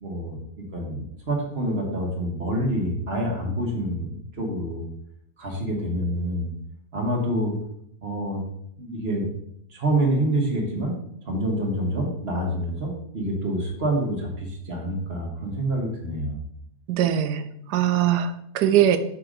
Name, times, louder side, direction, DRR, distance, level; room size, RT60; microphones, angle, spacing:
voice 1, 0.0-4.9 5.4-6.5 6.9-7.5 8.0-8.4 8.8-9.3 9.7-11.0 11.3-16.4, right 1 dB, 40° right, 0 dB, 1.5 m, -27 dB
voice 2, 16.9-19.0, right 10 dB, 90° right, 10 dB, 1.2 m, -21 dB
6.3 x 4.7 x 3.8 m, 0.73 s
omnidirectional pair, 1.7 m